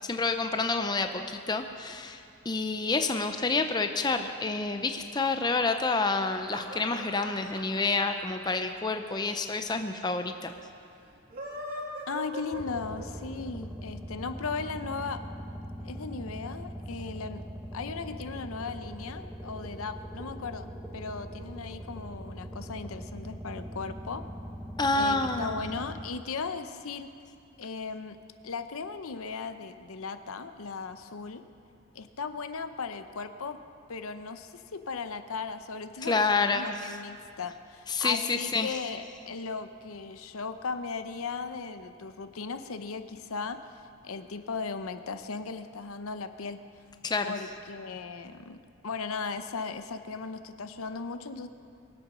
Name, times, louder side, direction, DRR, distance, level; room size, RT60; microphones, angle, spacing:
voice 1, 0.0-10.5 24.8-25.8 36.0-37.0 37.9-38.7 47.0-47.3, left 3 dB, 20° left, 6 dB, 0.5 m, -28 dB
sound 1, 6.1-9.5 9.8-9.9 10.1-10.2 11.1-13.3, right 1 dB, 40° right, 2.2 m, -41 dB
voice 2, 12.1-15.2 15.8-17.4 17.7-24.2 24.9-27.1 27.6-28.2 28.4-31.4 31.9-33.6 33.9-46.6 47.2-48.6 48.8-51.5, left 4 dB, 70° left, 10 dB, 0.7 m, -37 dB
sound 2, 12.5-26.1, equal, ahead, 1.2 m, -41 dB
22.5 x 8.3 x 6.1 m, 2.5 s
head